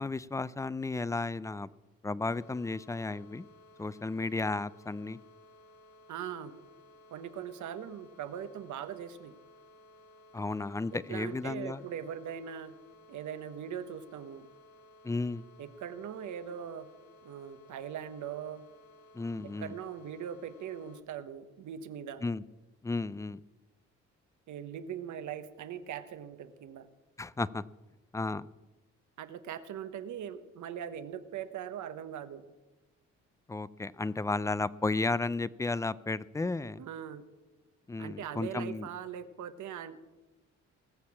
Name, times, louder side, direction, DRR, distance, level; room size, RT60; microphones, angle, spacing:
voice 1, 0.0-1.7 2.0-3.5 3.8-5.2 10.3-11.8 15.0-15.4 19.1-19.7 22.2-22.4 22.8-23.4 27.2-27.6 28.1-28.5 33.5-36.8 37.9-38.9, left 3 dB, 10° left, 19 dB, 0.4 m, -33 dB
sound 1, 2.3-21.0, left 1 dB, 85° left, 1.0 m, -58 dB
voice 2, 6.1-6.5 7.1-9.3 10.9-12.7 13.1-14.5 15.6-16.9 17.2-18.6 19.4-22.2 24.5-26.9 29.2-32.4 36.8-37.2 38.0-40.0, right 9 dB, 75° right, 11 dB, 1.2 m, -41 dB
19.0 x 6.8 x 7.4 m, 1.1 s
cardioid pair, 90°, 30 cm